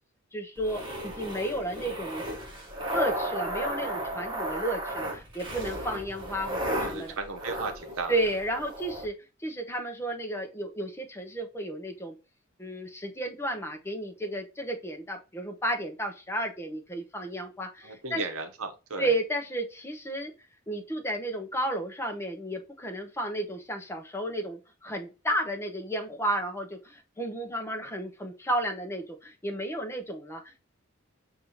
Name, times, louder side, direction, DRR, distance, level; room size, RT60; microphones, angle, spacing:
voice 1, 0.3-2.4 2.9-7.1 8.1-9.1 9.4-12.2 12.6-18.2 19.0-20.3 20.7-30.6, right 1 dB, 10° left, 0.8 m, -32 dB
sound 1, 0.6-9.1, right 1 dB, 25° right, 1.3 m, -34 dB
voice 2, 6.7-8.2 17.8-19.1, right 3 dB, 70° right, 0.9 m, -35 dB
5.4 x 2.7 x 2.8 m
head